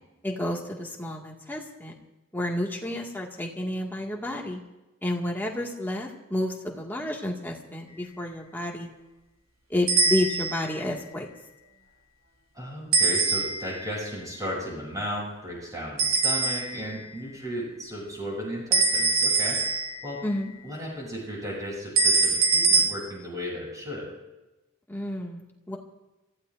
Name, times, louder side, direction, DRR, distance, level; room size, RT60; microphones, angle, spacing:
voice 1, 0.2-1.9 2.3-4.6 5.0-8.9 9.7-11.3 20.2-20.5 24.9-25.8, left 1 dB, 10° left, -1 dB, 2.0 m, -30 dB
sound 1, 9.9-10.7 12.9-13.8 16.0-16.9 18.7-20.1 22.0-22.8, right 4 dB, 80° right, 3.1 m, -23 dB
voice 2, 12.5-19.6 20.0-20.2 20.6-24.1, equal, 15° right, -4 dB, 7.7 m, -35 dB
30.0 x 15.5 x 2.6 m, 1.0 s
head